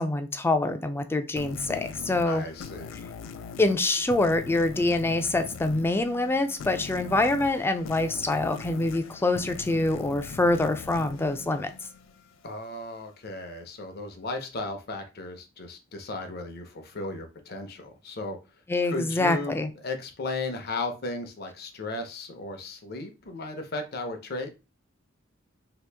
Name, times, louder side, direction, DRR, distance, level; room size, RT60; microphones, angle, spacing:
voice 1, 0.0-2.4 3.6-11.7 18.7-19.7, left 2 dB, 10° left, 8 dB, 0.3 m, -25 dB
sound 1, 1.4-12.5, left 6 dB, 90° left, 0.4 m, -41 dB
voice 2, 2.2-3.1 12.4-18.4 18.9-19.5 19.8-24.5, left 2 dB, 55° left, 5 dB, 0.7 m, -35 dB
2.9 x 2.5 x 3.3 m, 0.29 s
head